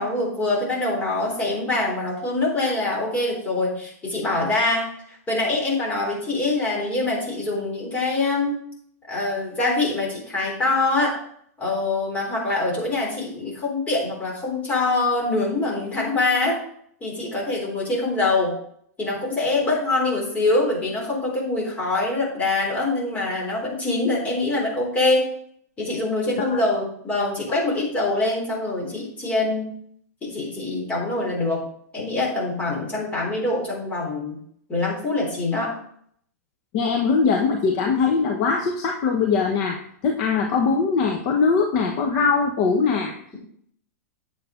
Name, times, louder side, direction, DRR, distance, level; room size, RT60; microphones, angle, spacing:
voice 1, 0.0-8.6 9.1-11.1 11.6-16.6 17.0-18.5 19.0-25.3 25.8-29.7 30.2-31.6 31.9-34.4 34.7-35.8, left 2 dB, 15° left, -3 dB, 3.7 m, -24 dB
voice 2, 36.7-43.2, left 5 dB, 40° left, 1 dB, 1.1 m, -21 dB
9.3 x 7.6 x 3.8 m, 0.64 s
supercardioid pair, 155°, 9 cm